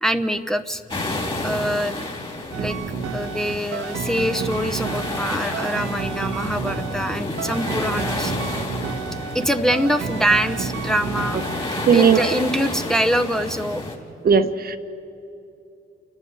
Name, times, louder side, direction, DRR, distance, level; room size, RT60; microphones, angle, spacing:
voice 1, 0.0-0.8 1.4-2.1 2.5-2.8 3.1-8.3 9.3-13.8, equal, ahead, 6 dB, 0.9 m, -24 dB
sound 1, 0.9-14.0, left 2 dB, 25° left, 3.7 m, -31 dB
sound 2, 2.5-11.9 12.1-12.4, right 6 dB, 90° right, 1.4 m, -31 dB
voice 2, 11.9-12.2 14.2-14.8, right 7 dB, 50° right, 9 dB, 1.1 m, -16 dB
29.0 x 12.0 x 9.7 m, 2.7 s
cardioid pair, 90°, 20 cm